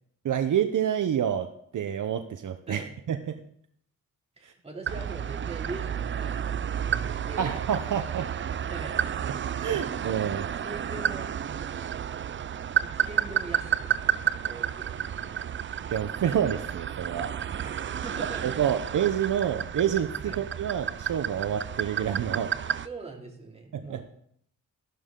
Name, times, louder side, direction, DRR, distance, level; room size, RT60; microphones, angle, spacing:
voice 1, 0.2-3.4 4.4-4.5 7.4-8.3 9.6-10.5 15.9-17.3 17.6-17.7 18.4-22.5 23.7-24.0, right 9 dB, 65° right, 8 dB, 0.8 m, -28 dB
voice 2, 4.4-7.5 8.7-9.0 9.6-9.9 10.6-11.3 12.8-15.4 17.6-17.7 18.0-18.6 20.2-20.4 22.8-24.0, right 3 dB, 20° right, 0 dB, 2.6 m, -42 dB
sound 1, 4.9-22.9, right 8 dB, 35° right, 0.4 m, -31 dB
14.5 x 12.0 x 3.8 m, 0.67 s
wide cardioid pair, 135°, 33 cm